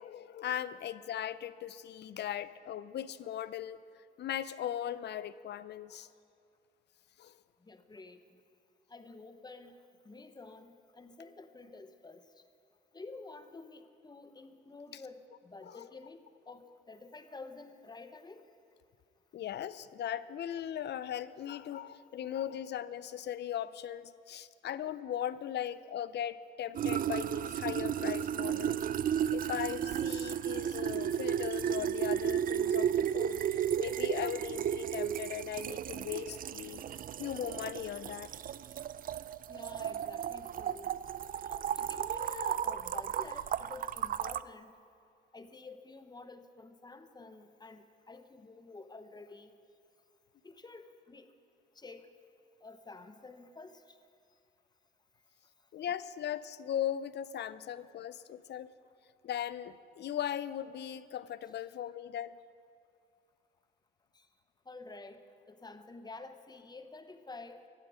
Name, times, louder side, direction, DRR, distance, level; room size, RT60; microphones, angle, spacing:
voice 1, 0.0-3.8 4.2-6.1 7.2-7.4 14.9-15.0 15.7-15.9 19.3-36.8 37.2-38.3 55.7-58.7 59.2-62.4, left 10 dB, 60° left, 16 dB, 0.6 m, -38 dB
voice 2, 7.6-8.4 8.9-9.8 10.0-12.4 12.9-18.5 39.5-41.0 41.5-44.7 45.3-49.5 50.4-51.3 51.7-52.1 52.6-54.0 64.1-64.3 64.6-67.7, left 3 dB, 20° left, 9 dB, 1.0 m, -50 dB
sound 1, 26.7-44.4, right 9 dB, 45° right, 0.4 m, -34 dB
17.5 x 11.5 x 5.0 m, 2.4 s
cardioid pair, 90°, 20 cm